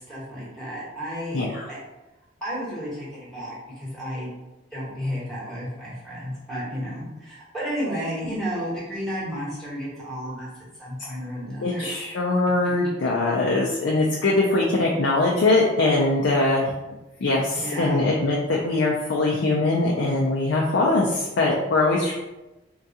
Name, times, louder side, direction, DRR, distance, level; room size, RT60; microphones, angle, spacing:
voice 1, 0.1-1.4 1.7-1.8 2.4-4.3 4.7-10.5 10.8-12.0 17.5-18.0, equal, ahead, -8 dB, 1.0 m, -32 dB
voice 2, 1.3-1.7 11.6-16.7 17.2-22.1, left 2 dB, 75° left, -2 dB, 0.5 m, -22 dB
3.6 x 2.3 x 2.8 m, 1.0 s
head